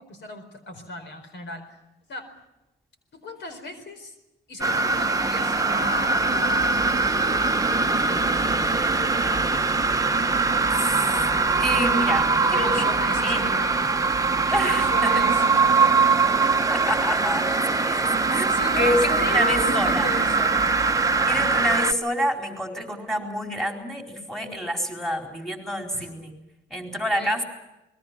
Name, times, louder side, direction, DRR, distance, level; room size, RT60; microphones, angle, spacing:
voice 1, 0.0-1.6 2.1-2.3 3.1-4.1 4.5-7.5 8.0-9.6 12.4-14.2 14.5-15.8 18.5-20.8 21.2-21.9 25.9-26.1 27.1-27.3, left 2 dB, 65° left, 8 dB, 4.6 m, -36 dB
sound 1, 4.6-21.9, right 4 dB, 15° right, 1.0 m, -22 dB
voice 2, 10.7-11.3 11.6-12.9 13.2-13.4 14.5-18.5 18.8-20.1 21.3-26.3 26.7-27.4, equal, ahead, 2 dB, 4.4 m, -28 dB
28.5 x 21.0 x 6.1 m, 0.96 s
cardioid pair, 90°, 20 cm